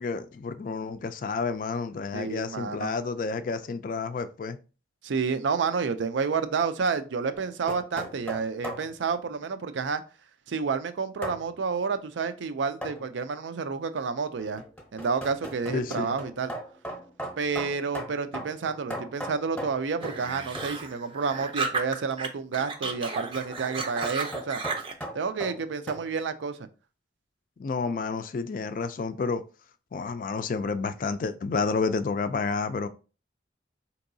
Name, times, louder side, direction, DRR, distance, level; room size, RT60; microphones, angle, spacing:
voice 1, 0.0-4.6 15.7-16.1 27.6-29.4 29.9-32.9, left 4 dB, 45° left, 0.3 m, -30 dB
voice 2, 2.1-2.9 5.0-10.0 10.5-14.6 14.9-16.5 17.4-24.6 25.1-26.7, right 5 dB, 80° right, 0.4 m, -30 dB
sound 1, 7.3-8.9 11.2-11.4 12.8-13.1 14.4-20.3 20.6-20.8 22.9-26.1, equal, 5° left, 0.8 m, -38 dB
sound 2, 20.0-22.3 22.5-25.0, right 4 dB, 30° right, 0.5 m, -33 dB
4.5 x 2.9 x 2.6 m
head